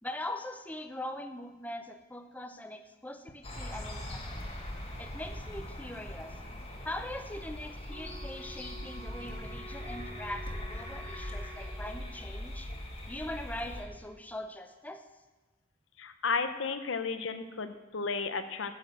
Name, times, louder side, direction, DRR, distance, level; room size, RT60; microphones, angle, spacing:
voice 1, 0.0-4.5 5.0-6.4 6.8-12.7 13.1-15.1, left 1 dB, 10° left, 7 dB, 0.6 m, -41 dB
sound 1, 3.4-13.8, left 1 dB, 30° left, 1.7 m, -41 dB
Wind instrument woodwind instrument, 7.9-12.2, equal, 70° right, 1.7 m, -50 dB
sound 2, 9.3-9.6 10.5-10.9, left 1 dB, 55° left, 1.7 m, -41 dB
voice 2, 16.0-18.7, left 4 dB, 70° left, 10 dB, 0.8 m, -33 dB
10.0 x 6.4 x 7.7 m, 1.2 s
head